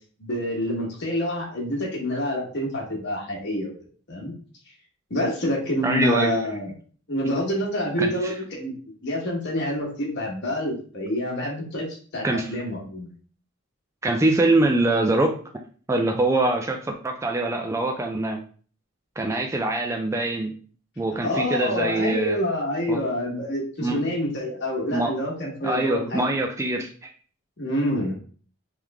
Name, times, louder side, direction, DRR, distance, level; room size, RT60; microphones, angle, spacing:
voice 1, 0.2-3.7 4.1-4.3 5.1-6.7 7.1-8.7 9.0-13.1 21.2-26.2 27.6-28.2, left 1 dB, 50° left, -2 dB, 1.3 m, -27 dB
voice 2, 5.8-6.4 8.0-8.3 12.2-12.5 14.0-15.4 15.9-18.4 19.2-20.5 21.0-22.4 22.9-23.0 23.8-24.0 24.9-25.1 25.6-27.1, right 2 dB, 15° right, 3 dB, 0.3 m, -23 dB
3.6 x 3.2 x 3.4 m, 0.43 s
head